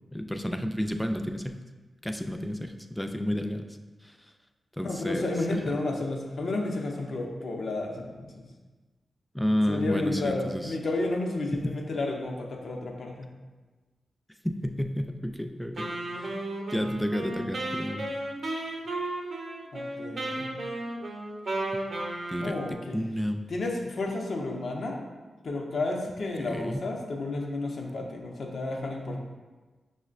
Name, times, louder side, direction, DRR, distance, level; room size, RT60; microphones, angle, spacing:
voice 1, 0.1-1.6 2.0-3.7 4.0-4.1 4.8-5.6 9.3-10.7 11.5-11.7 14.4-16.4 16.7-18.1 22.3-22.6 22.9-23.4 26.4-26.8, equal, 5° left, 6 dB, 0.3 m, -31 dB
voice 2, 4.8-8.5 9.7-13.3 19.7-20.5 22.4-23.0 23.5-25.0 25.4-29.2, left 2 dB, 70° left, 0 dB, 0.5 m, -32 dB
Wind instrument woodwind instrument, 15.8-22.9, right 1 dB, 65° right, 0.6 m, -34 dB
5.4 x 2.1 x 2.4 m, 1.3 s
cardioid pair, 50°, 0 cm